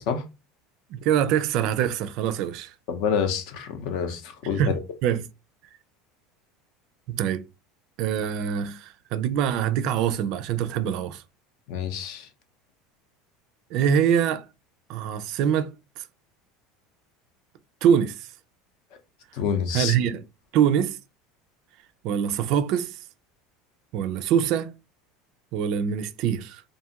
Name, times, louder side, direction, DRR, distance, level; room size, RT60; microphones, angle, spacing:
voice 1, 1.0-2.7 4.6-5.3 7.1-7.5 8.0-11.2 13.7-14.4 14.9-16.0 17.8-18.3 19.7-20.2 20.5-21.0 22.0-22.9 23.9-24.7 25.5-26.6, right 8 dB, 55° right, 0.3 m, -24 dB
voice 2, 2.9-4.8 11.7-12.3 19.3-19.9, left 7 dB, 60° left, 0.6 m, -27 dB
2.5 x 2.4 x 2.8 m
supercardioid pair, 150°, 0 cm